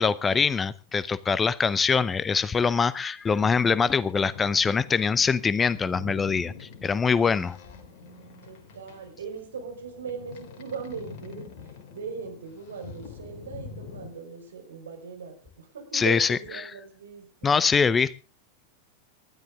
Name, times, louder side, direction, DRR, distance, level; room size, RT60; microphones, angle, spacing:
voice 1, 0.0-7.6 15.9-16.4 17.4-18.1, left 5 dB, 15° left, 19 dB, 0.6 m, -23 dB
Boat Water vehicle, 3.3-14.1, left 5 dB, 50° left, 2.9 m, -45 dB
voice 2, 8.4-11.5 11.9-17.5, right 5 dB, 65° right, 3 dB, 5.1 m, -39 dB
19.5 x 13.0 x 3.6 m, 0.33 s
figure-of-eight pair, 90°, 0 cm